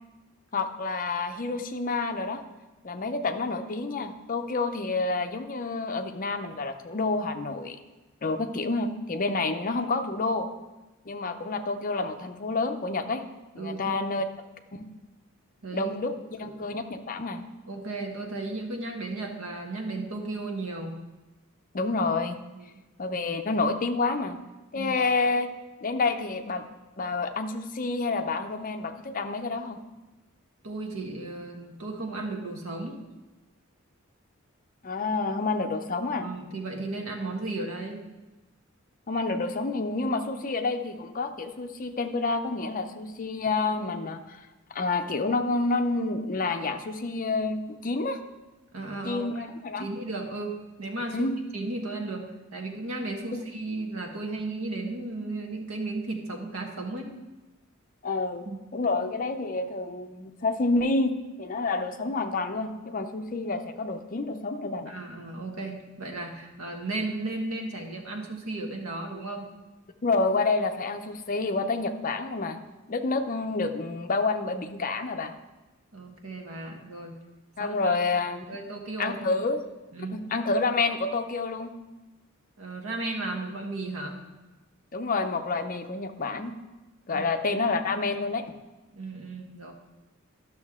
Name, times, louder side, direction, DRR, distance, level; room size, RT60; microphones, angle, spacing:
voice 1, 0.5-2.4 2.8-7.8 8.2-10.5 11.1-13.3 13.5-14.2 14.7-14.9 15.7-17.4 21.7-22.4 23.0-24.4 24.7-25.5 25.8-26.7 27.0-29.8 34.8-36.3 39.1-44.4 44.7-48.2 49.0-49.9 51.1-51.4 53.3-53.4 58.0-58.5 58.7-64.9 70.0-72.6 72.9-75.3 77.6-78.5 79.0-79.6 80.1-81.7 84.9-86.5 87.1-88.4, left 3 dB, 40° left, 7 dB, 0.6 m, -28 dB
voice 2, 13.6-14.0 15.6-15.9 16.4-16.5 17.7-21.0 22.5-22.6 24.7-25.0 30.6-33.0 36.2-38.0 48.7-49.4 49.8-57.1 58.4-58.6 64.9-69.5 75.9-77.2 77.6-78.0 78.5-79.4 79.9-80.2 82.6-84.2 87.1-87.3 88.9-89.7, right 2 dB, 85° right, 2 dB, 1.4 m, -35 dB
12.0 x 6.4 x 3.6 m, 1.1 s
head